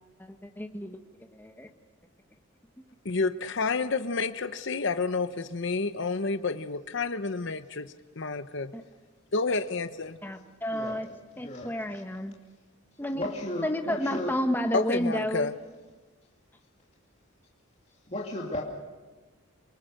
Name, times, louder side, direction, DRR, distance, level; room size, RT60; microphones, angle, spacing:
voice 1, 0.2-1.0 1.3-1.7 8.7-8.8 10.2-11.1 11.4-12.3 13.0-13.3 13.6-15.5, equal, 10° left, 5 dB, 1.3 m, -31 dB
voice 2, 3.0-8.7 9.3-10.2 14.7-15.5, left 4 dB, 55° left, 10 dB, 0.8 m, -30 dB
voice 3, 11.3-12.0 13.1-14.4 18.1-18.6, left 1 dB, 30° left, -3 dB, 2.6 m, -35 dB
29.5 x 19.5 x 6.6 m, 1.3 s
head